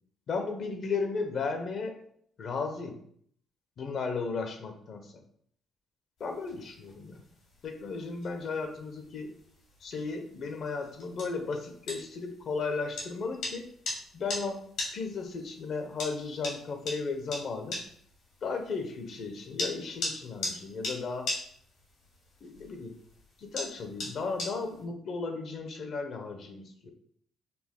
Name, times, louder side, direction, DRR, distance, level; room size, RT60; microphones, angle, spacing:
voice 1, 0.3-2.0 2.4-3.0 3.8-5.2 6.2-7.2 7.6-9.3 9.8-13.7 14.1-14.6 14.9-17.8 18.4-21.4 22.4-22.9 23.4-26.9, left 4 dB, 60° left, 5 dB, 0.7 m, -35 dB
sound 1, 6.2-24.8, left 2 dB, 85° left, 1.6 m, -41 dB
4.1 x 2.3 x 3.6 m, 0.64 s
cardioid pair, 90°, 0 cm